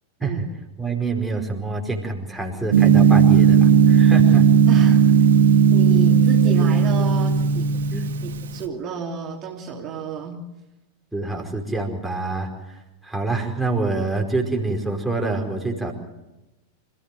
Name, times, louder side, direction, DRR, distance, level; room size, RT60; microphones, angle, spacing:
voice 1, 0.8-4.4 7.9-8.1 11.1-15.9, right 3 dB, ahead, 0 dB, 4.9 m, -26 dB
Gong, 2.7-8.6, right 7 dB, 60° right, 1.8 m, -15 dB
voice 2, 4.7-5.2 5.7-7.7 8.2-10.4, right 5 dB, 30° right, 0 dB, 3.1 m, -31 dB
27.5 x 16.0 x 7.9 m, 0.98 s
figure-of-eight pair, 90°, 0 cm